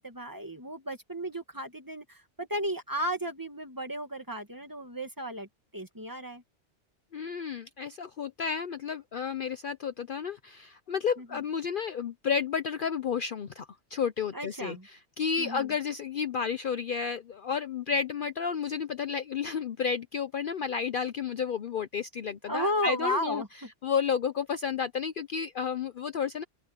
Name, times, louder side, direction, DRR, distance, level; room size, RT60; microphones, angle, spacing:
voice 1, 0.0-5.5 5.7-6.4 11.2-11.4 14.3-14.9 15.4-15.7 22.5-23.5, equal, 15° right, 2.1 m, -34 dB
voice 2, 7.1-14.8 15.2-23.4 23.8-26.4, left 6 dB, 55° left, 0.8 m, -31 dB
open air
omnidirectional pair, 1.2 m